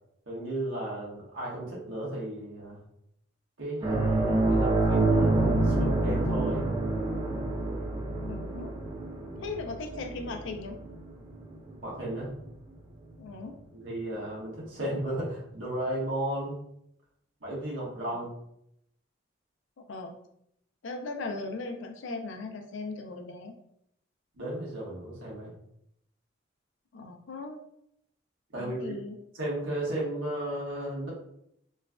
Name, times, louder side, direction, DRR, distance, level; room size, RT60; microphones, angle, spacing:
voice 1, 0.3-2.8 3.6-6.7 11.8-12.3 13.7-16.7 17.4-18.3 24.3-25.5 28.5-29.0 29.3-31.1, right 1 dB, 80° right, -5 dB, 1.3 m, -34 dB
sound 1, 3.8-12.8 13.1-13.3 15.3-15.4, right 2 dB, 20° right, 0.4 m, -28 dB
voice 2, 8.1-8.7 9.4-10.8 13.2-13.6 19.9-20.2 20.8-23.5 26.9-27.6 28.6-29.1, left 3 dB, 70° left, 5 dB, 0.4 m, -38 dB
3.1 x 2.4 x 2.2 m, 0.75 s
head